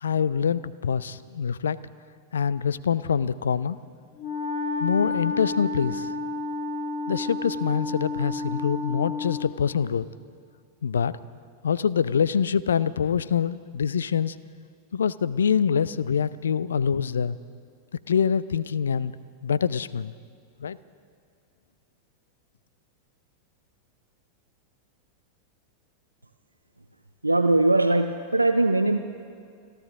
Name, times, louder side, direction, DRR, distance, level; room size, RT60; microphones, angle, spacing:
voice 1, 0.0-1.8 2.3-3.8 4.8-6.1 7.1-10.1 10.8-11.1 11.6-14.4 14.9-17.4 18.1-19.1 19.4-20.1 20.6-20.8, left 7 dB, 70° left, 18 dB, 0.4 m, -25 dB
Wind instrument woodwind instrument, 4.2-9.6, left 3 dB, 50° left, 1.6 m, -31 dB
voice 2, 27.2-29.0, right 2 dB, 85° right, 7 dB, 0.5 m, -21 dB
27.0 x 12.5 x 3.6 m, 2.2 s
figure-of-eight pair, 90°, 0 cm